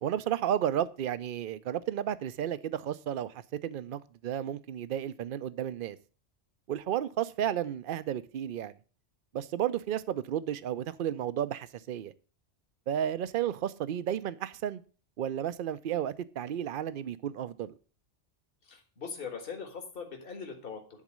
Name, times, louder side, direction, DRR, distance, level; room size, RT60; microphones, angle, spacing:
voice 1, 0.0-6.0 6.7-8.7 9.3-12.1 12.9-14.8 15.2-17.7, right 10 dB, 55° right, 0.7 m, -32 dB
voice 2, 18.7-20.8, left 5 dB, 50° left, 1.8 m, -40 dB
11.0 x 4.1 x 7.5 m
omnidirectional pair, 1.2 m